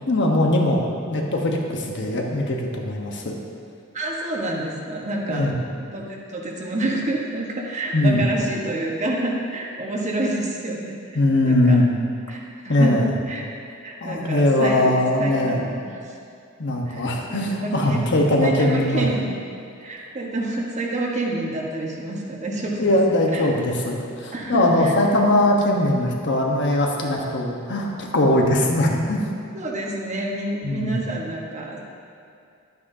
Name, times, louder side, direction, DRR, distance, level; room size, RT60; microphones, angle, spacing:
voice 1, 0.1-3.4 5.3-5.6 7.9-8.3 11.1-11.9 12.7-13.1 14.0-15.6 16.6-19.1 22.8-29.3 30.6-31.0, left 1 dB, 55° left, 0 dB, 1.2 m, -20 dB
voice 2, 3.9-11.0 11.4-11.8 12.3-13.4 13.8-14.9 15.2-15.9 16.9-19.4 19.8-23.0 23.3-23.5 24.3-25.2 29.5-31.8, right 1 dB, 35° right, -1 dB, 1.2 m, -28 dB
12.0 x 9.3 x 2.7 m, 2.5 s
head